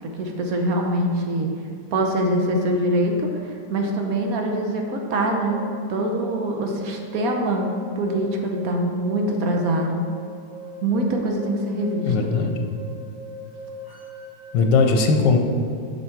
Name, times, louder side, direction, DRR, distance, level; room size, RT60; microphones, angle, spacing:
voice 1, 0.2-1.5 1.9-7.7 8.0-10.0 10.8-12.1, right 1 dB, 60° right, 2 dB, 1.2 m, -24 dB
sound 1, 5.4-14.6, equal, 15° left, 1.3 m, -41 dB
voice 2, 12.0-12.6 14.5-15.4, left 4 dB, 85° left, 4 dB, 1.4 m, -18 dB
7.0 x 5.5 x 4.6 m, 2.4 s
omnidirectional pair, 1.9 m